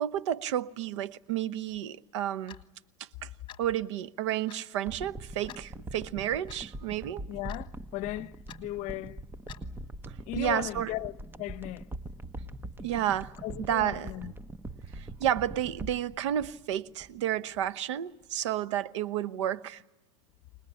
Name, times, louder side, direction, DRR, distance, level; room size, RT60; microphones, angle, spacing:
voice 1, 0.0-2.6 3.2-3.3 3.6-7.2 10.3-10.9 12.8-13.3 13.6-14.1 14.9-19.8, right 11 dB, 85° right, 0.9 m, -31 dB
Clock, 2.5-2.7 3.5-3.7 4.5-4.6 5.5-5.7 6.5-6.6 7.5-7.7 8.5-8.6 9.5-9.7, left 11 dB, 35° left, 1.8 m, -48 dB
sound 1, 4.9-17.3 17.6-17.7, right 2 dB, 15° right, 0.9 m, -43 dB
voice 2, 7.3-8.3 8.6-9.2 10.3-11.8 13.4-14.3, left 16 dB, 55° left, 0.9 m, -36 dB
25.0 x 20.0 x 9.8 m
supercardioid pair, 120°, 15 cm